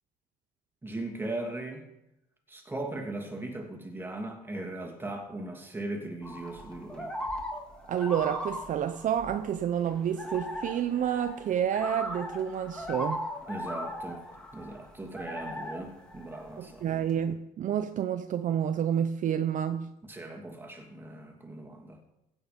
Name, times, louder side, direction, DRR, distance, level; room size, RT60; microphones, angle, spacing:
voice 1, 0.8-1.9 2.5-7.1 13.5-14.2 14.5-17.1 20.0-22.0, right 2 dB, 10° right, 2.7 m, -38 dB
sound 1, 6.2-17.1, equal, 5° left, 2.4 m, -39 dB
voice 2, 7.9-13.2 16.6-19.9, right 9 dB, 50° right, 0.7 m, -29 dB
16.0 x 8.7 x 5.2 m
cardioid pair, 110°, 17 cm